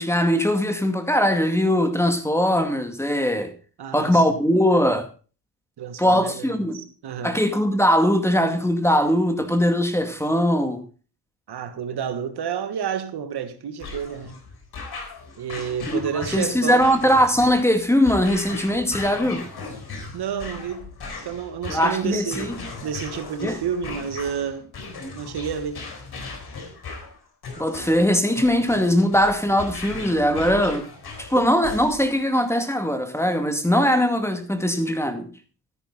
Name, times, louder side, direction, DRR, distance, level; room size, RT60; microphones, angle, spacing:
voice 1, 0.0-3.5 3.9-5.1 6.0-6.8 7.2-10.8 15.9-19.4 21.7-22.6 23.4-23.6 27.6-30.9 31.2-35.3, equal, 5° left, 2.2 m, -21 dB
voice 2, 3.8-4.4 5.8-7.4 11.5-14.4 15.4-16.9 20.1-20.9 21.2-22.5 22.8-24.7 25.1-25.8 27.7-27.8 31.4-31.5, right 7 dB, 60° right, 1.5 m, -30 dB
sound 1, 13.8-32.2, left 3 dB, 55° left, 4.1 m, -37 dB
13.5 x 10.0 x 3.9 m
supercardioid pair, 55°, 44 cm